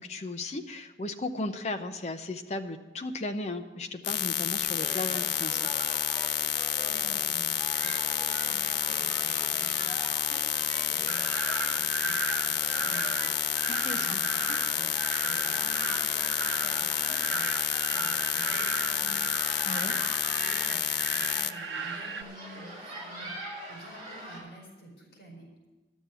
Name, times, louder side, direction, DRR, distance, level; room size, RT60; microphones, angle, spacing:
voice 1, 0.0-5.7 13.7-14.2 19.6-19.9, left 2 dB, 40° left, 7 dB, 0.7 m, -36 dB
sound 1, 4.0-21.5, left 12 dB, 80° left, 0.4 m, -29 dB
sound 2, 4.6-24.4, right 1 dB, 25° right, 4.3 m, -42 dB
voice 2, 6.8-13.6 13.9-25.5, right 1 dB, 65° left, -2 dB, 4.8 m, -50 dB
sound 3, 11.1-22.2, right 4 dB, 75° right, 0.9 m, -36 dB
11.5 x 7.3 x 8.3 m, 1.2 s
head